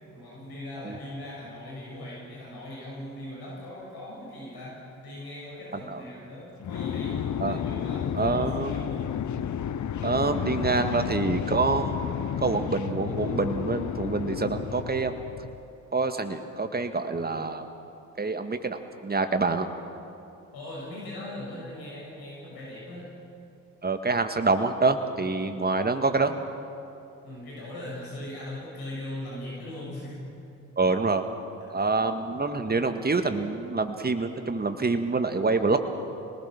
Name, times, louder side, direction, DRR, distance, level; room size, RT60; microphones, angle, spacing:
voice 1, 0.1-9.1 20.5-23.1 27.2-30.2 31.7-31.9, left 1 dB, 65° left, -4 dB, 6.9 m, -39 dB
sound 1, 6.6-15.6, left 9 dB, 45° left, 1.0 m, -31 dB
voice 2, 8.1-8.7 10.0-12.1 12.4-15.2 15.9-17.7 18.2-19.7 23.8-26.4 30.8-31.3 31.7-35.8, right 3 dB, 25° right, 7 dB, 1.9 m, -26 dB
27.0 x 19.5 x 6.1 m, 2.7 s
hypercardioid pair, 45°, 40 cm